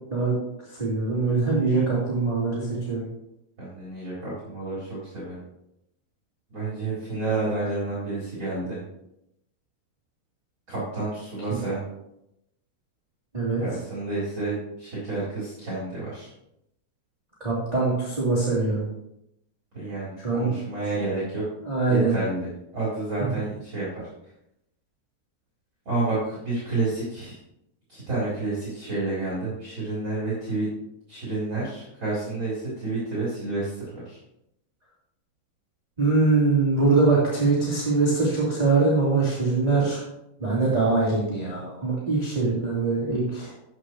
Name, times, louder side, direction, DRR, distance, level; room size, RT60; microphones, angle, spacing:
voice 1, 0.7-3.0 13.3-13.6 17.4-18.8 20.2-20.5 21.6-22.1 23.2-23.3 36.0-40.0 40.4-43.5, right 3 dB, 10° right, -8 dB, 2.6 m, -23 dB
voice 2, 3.6-5.4 6.5-8.8 10.7-11.8 13.6-16.3 19.7-21.4 21.9-24.1 25.9-27.4 27.9-30.7 31.1-34.2, right 2 dB, 25° right, -9 dB, 4.3 m, -30 dB
14.5 x 8.4 x 3.2 m, 0.82 s
omnidirectional pair, 5.2 m